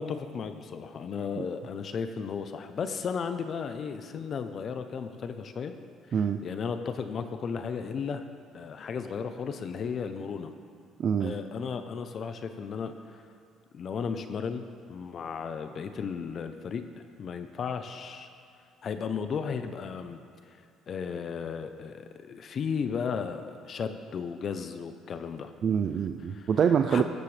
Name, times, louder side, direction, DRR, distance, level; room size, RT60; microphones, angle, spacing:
voice 1, 0.0-5.7 6.4-8.3 8.5-10.5 11.2-13.2 13.7-14.6 14.9-16.8 17.2-18.3 18.8-20.2 20.5-25.5 26.3-26.5 26.9-27.0, left 6 dB, 45° left, 8 dB, 0.7 m, -34 dB
voice 2, 11.0-11.3 25.6-27.0, right 7 dB, 45° right, 6 dB, 0.5 m, -25 dB
17.5 x 13.0 x 3.3 m, 2.3 s
cardioid pair, 115°, 0 cm